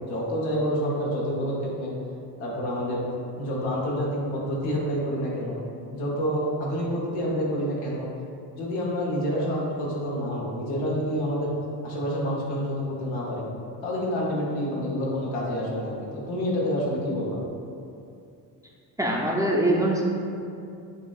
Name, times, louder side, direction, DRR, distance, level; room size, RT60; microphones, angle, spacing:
voice 1, 0.0-1.9 2.4-3.0 3.4-5.6 5.9-8.1 8.5-11.5 11.8-13.4 13.8-17.4, equal, 85° left, -4 dB, 1.0 m, -28 dB
voice 2, 19.0-20.0, right 1 dB, 5° right, -3 dB, 0.5 m, -23 dB
6.6 x 2.4 x 2.3 m, 2.5 s
supercardioid pair, 60°, 46 cm